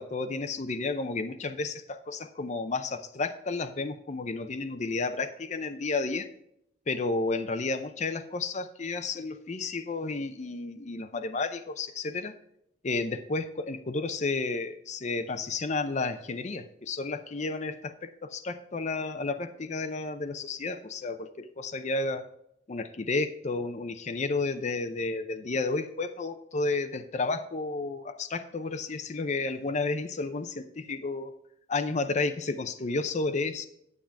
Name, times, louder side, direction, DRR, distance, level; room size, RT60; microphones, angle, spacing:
voice 1, 0.0-6.3 6.9-12.3 12.8-22.3 22.7-31.3 31.7-33.7, left 3 dB, 40° left, 8 dB, 0.6 m, -32 dB
9.7 x 8.7 x 3.4 m, 0.77 s
head